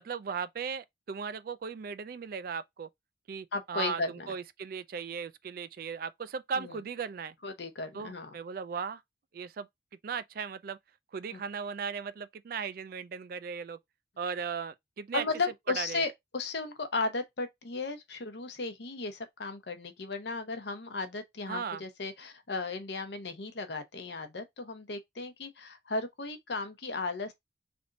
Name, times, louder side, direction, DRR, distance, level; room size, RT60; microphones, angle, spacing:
voice 1, 0.0-2.9 3.3-7.3 7.9-9.0 9.3-9.7 10.0-10.8 11.1-13.8 14.2-15.2 15.8-16.0 21.5-21.8, right 6 dB, 50° right, 0.3 m, -37 dB
voice 2, 3.5-4.3 6.6-6.8 7.4-8.4 11.3-11.4 15.1-27.3, left 3 dB, 65° left, 0.8 m, -35 dB
3.4 x 2.6 x 3.8 m
head